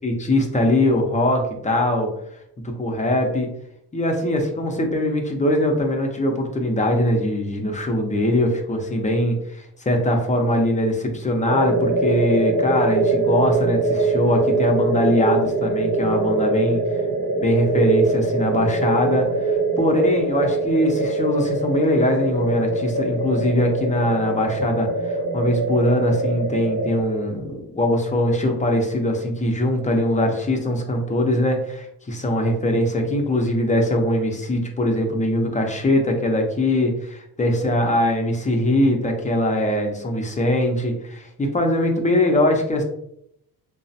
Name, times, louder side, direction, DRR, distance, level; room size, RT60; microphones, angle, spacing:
voice 1, 0.0-2.1 2.8-3.5 3.9-17.0 17.4-42.8, left 1 dB, 20° left, 2 dB, 0.5 m, -21 dB
sound 1, 11.5-27.0, right 3 dB, 60° right, 0.6 m, -23 dB
3.0 x 2.0 x 2.6 m, 0.74 s
cardioid pair, 85°, 40 cm